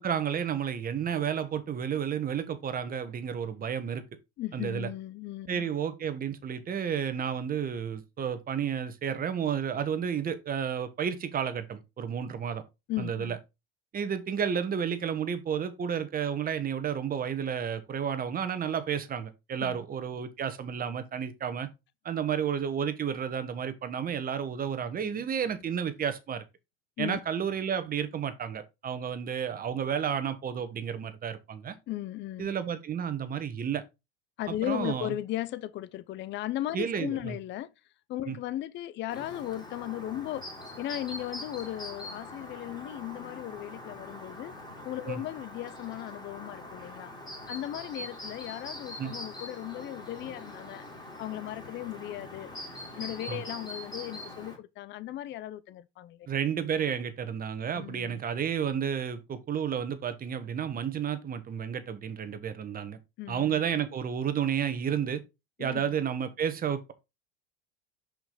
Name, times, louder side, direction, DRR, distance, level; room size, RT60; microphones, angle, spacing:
voice 1, 0.0-4.0 4.5-4.9 5.5-12.6 13.0-13.4 13.9-21.7 22.0-26.4 27.0-31.8 32.4-33.8 34.5-35.1 36.7-37.4 38.3-38.4 45.0-45.2 49.0-49.1 53.3-53.4 56.3-63.0 63.3-65.2 65.6-66.9, right 8 dB, 30° right, 1.3 m, -31 dB
voice 2, 4.4-5.7 12.9-13.4 19.6-19.8 27.0-27.2 31.9-32.5 34.4-37.7 38.1-40.4 40.8-44.5 44.8-47.1 47.5-50.8 51.2-52.5 53.0-56.2 57.8-58.2 63.2-63.6 65.6-65.9, left 14 dB, 40° left, 0.6 m, -36 dB
Chirp tweet, 39.1-54.6, left 1 dB, 15° left, 3.1 m, -43 dB
6.0 x 5.1 x 3.9 m
supercardioid pair, 110°, 30 cm